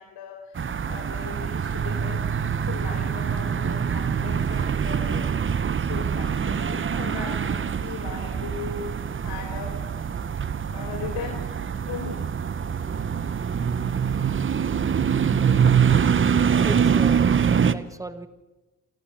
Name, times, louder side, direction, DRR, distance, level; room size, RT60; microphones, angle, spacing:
voice 1, 0.0-5.3 5.8-10.1 10.7-11.4 11.9-12.4, left 6 dB, 85° left, 4 dB, 3.3 m, -38 dB
sound 1, 0.6-17.7, right 7 dB, 35° right, 0.9 m, -24 dB
voice 2, 16.5-17.3 17.6-18.3, right 1 dB, 10° right, 11 dB, 1.6 m, -36 dB
27.5 x 12.5 x 8.7 m, 1.1 s
cardioid pair, 95°, 37 cm